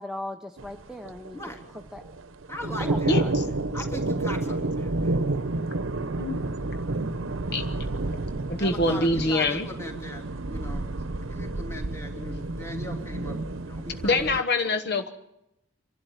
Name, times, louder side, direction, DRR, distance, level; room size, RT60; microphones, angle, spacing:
voice 1, 0.0-1.4 1.9-2.0 2.8-3.3, left 1 dB, 5° right, 4 dB, 0.8 m, -37 dB
sound 1, 0.6-14.4, right 2 dB, 80° right, 0.9 m, -30 dB
voice 2, 1.3-1.7 2.5-5.5 7.6-7.8 8.1-8.3 8.6-10.2 10.5-10.8 11.2-14.8, left 1 dB, 15° left, 1 dB, 3.3 m, -40 dB
voice 3, 3.1-3.4 6.2-6.4 7.5-7.6 8.5-9.7 14.0-15.1, left 2 dB, 55° left, 8 dB, 1.1 m, -25 dB
26.5 x 12.0 x 9.2 m, 0.86 s
head